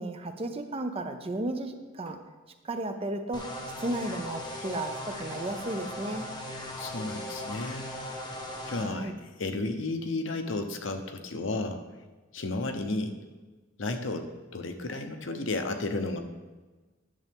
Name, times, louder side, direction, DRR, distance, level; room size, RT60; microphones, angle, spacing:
voice 1, 0.0-2.2 2.6-3.5 3.8-6.3 8.8-9.1, right 1 dB, 30° right, 7 dB, 0.6 m, -34 dB
sound 1, 3.3-8.8, left 1 dB, 20° left, 1.2 m, -38 dB
voice 2, 6.8-7.9 8.6-11.8 12.3-13.2 13.8-16.2, left 2 dB, 75° left, 6 dB, 0.8 m, -33 dB
10.5 x 6.7 x 3.6 m, 1.3 s
head